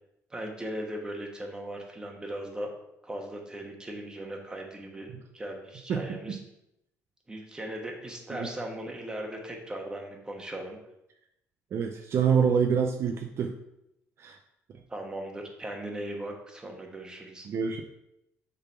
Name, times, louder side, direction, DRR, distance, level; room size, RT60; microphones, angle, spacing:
voice 1, 0.3-2.7 3.0-5.1 5.3-6.4 7.3-10.8 14.9-17.5, right 1 dB, 15° right, 1 dB, 1.4 m, -38 dB
voice 2, 11.7-13.5 14.2-14.4 17.4-17.8, right 7 dB, 45° right, 4 dB, 0.6 m, -26 dB
6.7 x 4.0 x 5.8 m, 0.84 s
cardioid pair, 125°, 6 cm